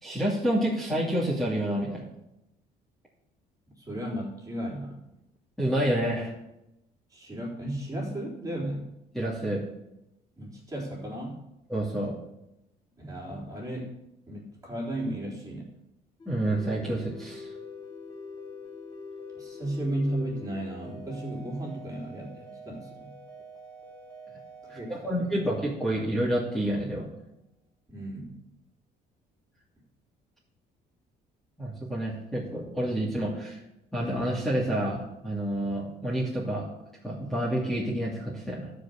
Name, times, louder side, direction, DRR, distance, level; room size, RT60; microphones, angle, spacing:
voice 1, 0.0-2.1 5.6-6.3 9.1-9.6 11.7-12.2 16.2-17.5 24.7-27.1 31.6-33.6 33.9-36.7 37.0-38.7, right 1 dB, ahead, -7 dB, 2.8 m, -28 dB
voice 2, 3.8-5.0 7.1-8.9 10.4-11.4 13.0-14.0 14.3-15.7 19.3-23.1 24.6-25.2 27.9-28.4, right 1 dB, 20° right, -3 dB, 3.9 m, -34 dB
sound 1, 16.2-26.5, left 2 dB, 25° left, 3.9 m, -45 dB
12.5 x 5.2 x 7.1 m, 0.90 s
cardioid pair, 110°, 17 cm